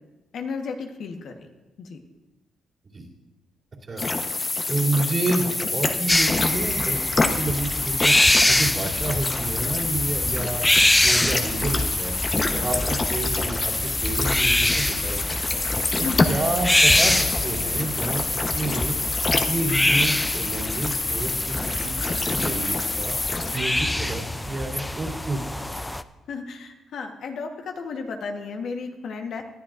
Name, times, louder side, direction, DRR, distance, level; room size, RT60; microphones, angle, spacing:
voice 1, 0.3-1.5 1.8-2.0 12.5-12.7 16.0-16.2 26.3-29.4, left 5 dB, 65° left, 4 dB, 1.2 m, -33 dB
sound 1, 4.0-23.6, left 3 dB, 30° left, 1.0 m, -26 dB
voice 2, 4.7-7.0 7.3-8.1 8.5-10.7 11.0-12.1 12.5-15.6 16.0-19.0 19.3-23.1 23.5-25.6, right 2 dB, 40° right, -3 dB, 3.0 m, -29 dB
sound 2, 6.1-26.0, left 1 dB, 10° left, 0.4 m, -25 dB
Thunder, 16.4-19.0, left 6 dB, 85° left, 0.8 m, -38 dB
20.0 x 11.5 x 2.5 m, 1.1 s
cardioid pair, 90°, 0 cm